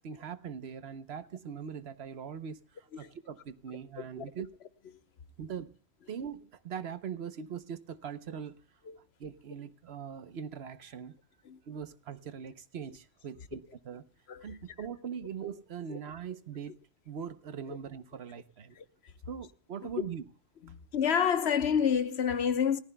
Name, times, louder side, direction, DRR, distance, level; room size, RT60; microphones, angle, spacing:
voice 1, 0.0-4.5 5.4-5.7 6.1-8.6 9.2-11.2 11.7-14.0 14.4-16.8 17.1-18.8 19.3-20.2, right 7 dB, 70° right, 1.1 m, -41 dB
voice 2, 20.9-22.8, left 7 dB, 75° left, 1.1 m, -28 dB
29.0 x 15.0 x 2.2 m
omnidirectional pair, 1.1 m